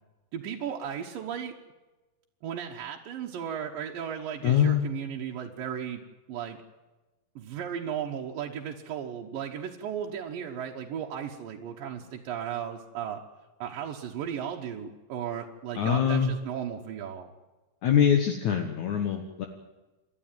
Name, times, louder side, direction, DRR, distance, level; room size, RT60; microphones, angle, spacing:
voice 1, 0.3-1.5 2.4-6.0 6.3-6.6 7.4-13.2 13.6-17.3, right 8 dB, 70° right, -1 dB, 2.8 m, -35 dB
voice 2, 4.4-4.9 15.8-16.3 17.8-19.5, left 8 dB, 60° left, 5 dB, 2.3 m, -24 dB
28.5 x 12.5 x 9.1 m, 1.1 s
omnidirectional pair, 4.2 m